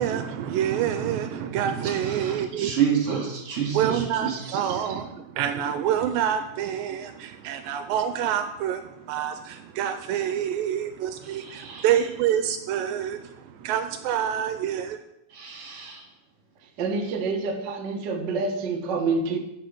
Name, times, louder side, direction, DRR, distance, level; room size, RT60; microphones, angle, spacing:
voice 1, 0.0-2.7 3.7-15.0, right 9 dB, 80° right, 8 dB, 2.3 m, -27 dB
voice 2, 2.2-4.6 11.4-11.9 15.3-16.0, right 8 dB, 45° right, 0 dB, 3.2 m, -29 dB
voice 3, 16.8-19.4, right 4 dB, 60° right, 2 dB, 1.1 m, -27 dB
9.4 x 7.2 x 7.8 m, 0.86 s
omnidirectional pair, 4.1 m